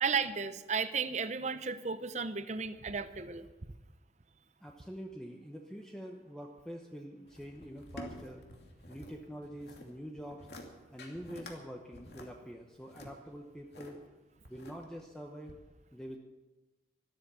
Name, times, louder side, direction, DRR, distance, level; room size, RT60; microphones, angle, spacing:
voice 1, 0.0-3.5, right 5 dB, 40° right, 12 dB, 0.7 m, -34 dB
voice 2, 4.6-8.4 8.9-10.5 10.9-14.0 14.5-15.5 15.9-16.2, equal, 5° left, 1 dB, 0.9 m, -45 dB
sound 1, 7.3-9.1 9.4-9.9 10.3-10.7 11.0-11.6 11.9-13.9 14.4-15.0 15.5-15.6, left 1 dB, 65° left, 2.6 m, -49 dB
13.0 x 13.0 x 7.0 m, 1.1 s
head